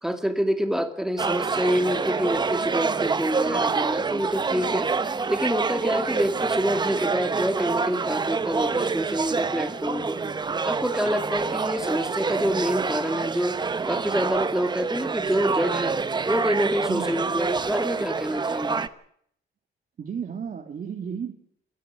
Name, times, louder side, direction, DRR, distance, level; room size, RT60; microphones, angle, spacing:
voice 1, 0.0-10.2 10.6-13.6 13.9-16.0 16.3-18.9, equal, ahead, 7 dB, 2.1 m, -27 dB
sound 1, 1.2-18.9, right 4 dB, 20° right, 0.7 m, -27 dB
voice 2, 16.9-17.2 20.0-21.3, right 7 dB, 45° right, 3 dB, 1.8 m, -33 dB
27.5 x 10.5 x 9.4 m, 0.68 s
wide cardioid pair, 165°, 20 cm